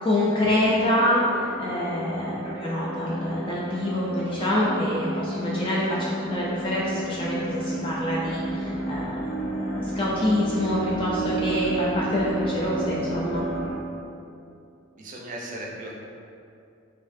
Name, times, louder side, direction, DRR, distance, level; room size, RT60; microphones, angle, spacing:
voice 1, 0.0-13.4, left 1 dB, 25° left, -6 dB, 0.4 m, -26 dB
sound 1, 0.6-13.7, right 1 dB, 75° left, 1.0 m, -31 dB
voice 2, 14.9-16.0, right 1 dB, 40° right, -2 dB, 0.5 m, -37 dB
4.2 x 2.6 x 2.6 m, 2.6 s
head